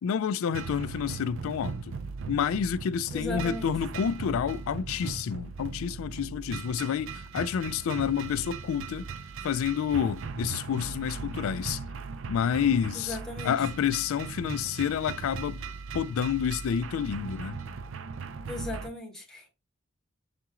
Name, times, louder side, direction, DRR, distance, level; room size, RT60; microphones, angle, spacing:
voice 1, 0.0-1.9 2.3-9.1 9.4-11.8 12.3-13.2 13.4-15.6 15.9-17.6, left 8 dB, 65° left, 0.3 m, -29 dB
sound 1, 0.5-18.9, right 5 dB, 60° right, 0.4 m, -38 dB
voice 2, 3.1-3.7 12.9-13.7 18.5-19.5, left 2 dB, 5° left, 1.1 m, -37 dB
6.6 x 2.4 x 2.9 m
head